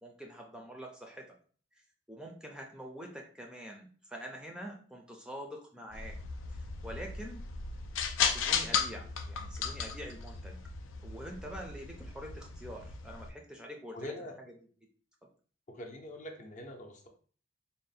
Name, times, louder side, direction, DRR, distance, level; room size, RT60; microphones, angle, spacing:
voice 1, 0.0-1.4 1.8-6.2 6.5-7.4 8.3-10.6 11.0-14.1 14.4-14.5 15.2-15.3, equal, 5° right, 2 dB, 0.5 m, -46 dB
sound 1, 5.9-13.3, left 6 dB, 80° left, 0.5 m, -36 dB
voice 2, 13.9-14.4 15.7-17.1, left 1 dB, 40° left, 3 dB, 0.6 m, -44 dB
3.8 x 2.1 x 4.0 m, 0.43 s
head